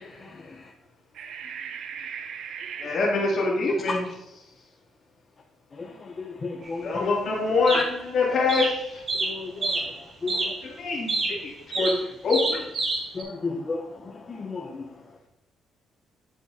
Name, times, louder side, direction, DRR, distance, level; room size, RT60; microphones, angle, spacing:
voice 1, 1.2-2.9, right 7 dB, 70° right, 7 dB, 0.6 m, -37 dB
voice 2, 2.8-4.0 6.8-9.0 10.6-12.6, left 3 dB, 60° left, -3 dB, 2.4 m, -25 dB
voice 3, 6.2-6.8 7.7-7.8 9.2-9.7 10.2-10.4 13.2-13.8 14.4-14.6, left 4 dB, 35° left, 1 dB, 0.7 m, -32 dB
sound 1, 6.7-6.8 7.7-8.1 8.5-10.0 10.3-10.6 11.1-13.2, right 3 dB, 50° right, 1.5 m, -28 dB
10.0 x 4.7 x 2.7 m, 0.87 s
supercardioid pair, 75°, 0 cm